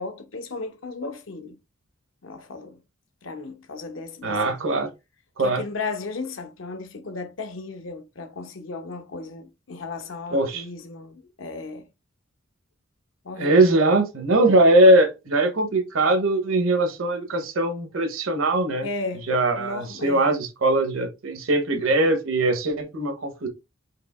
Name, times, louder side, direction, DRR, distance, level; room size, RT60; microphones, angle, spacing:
voice 1, 0.0-1.6 2.2-2.8 3.2-4.6 5.4-11.9 13.2-13.6 18.8-19.3 19.5-20.3, left 3 dB, 75° left, 0.8 m, -35 dB
voice 2, 4.2-4.9 5.4-5.6 10.3-10.6 13.4-18.9 19.3-23.5, right 2 dB, 80° right, 0.9 m, -21 dB
4.6 x 2.9 x 2.4 m
head